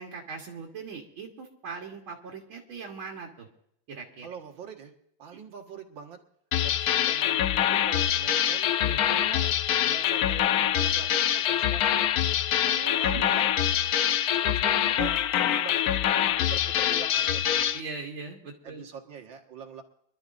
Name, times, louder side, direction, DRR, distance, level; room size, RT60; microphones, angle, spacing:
voice 1, 0.0-3.5 3.9-4.3 8.8-9.0 12.6-13.5 17.7-18.8, right 5 dB, 90° right, -1 dB, 2.4 m, -40 dB
voice 2, 4.2-4.9 5.2-6.2 6.6-8.7 9.1-9.5 9.8-12.1 13.0-13.5 14.4-17.6 18.6-19.8, right 6 dB, 70° right, 3 dB, 2.3 m, -43 dB
sound 1, 6.5-17.8, left 10 dB, 70° left, 0.9 m, -25 dB
25.5 x 12.5 x 2.6 m, 0.73 s
omnidirectional pair, 2.1 m